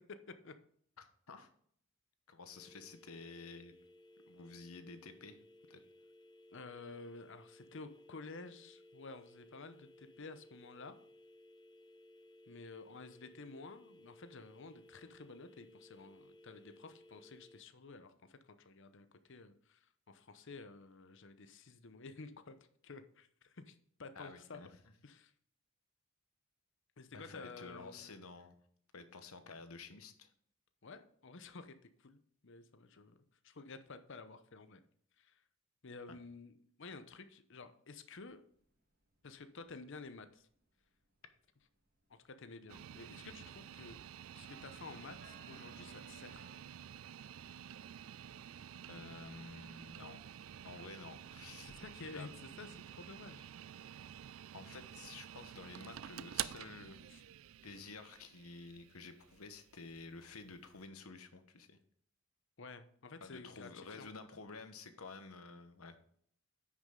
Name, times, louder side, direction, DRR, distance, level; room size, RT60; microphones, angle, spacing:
voice 1, 1.0-1.5 2.3-3.8 4.3-5.4 5.7-5.8 24.2-24.7 27.1-28.6 28.9-30.3 48.9-50.2 50.6-51.7 52.1-52.3 54.5-57.0 57.6-61.8 63.2-66.0, left 4 dB, 85° left, 9 dB, 1.2 m, -51 dB
sound 1, 2.5-17.6, equal, 20° left, 0.6 m, -61 dB
voice 2, 6.5-11.0 12.5-22.6 22.8-24.6 25.0-25.3 27.0-28.1 30.8-34.8 35.2-35.4 35.8-38.4 39.2-40.5 42.1-44.0 44.3-46.5 51.6-53.5 57.1-57.2 62.6-64.1, left 3 dB, 60° left, 10 dB, 0.8 m, -52 dB
sound 2, 38.3-46.6, right 3 dB, 45° right, 1.7 m, -62 dB
sound 3, 42.7-60.8, right 11 dB, 65° right, 0.3 m, -49 dB
9.7 x 6.2 x 3.8 m, 0.63 s
head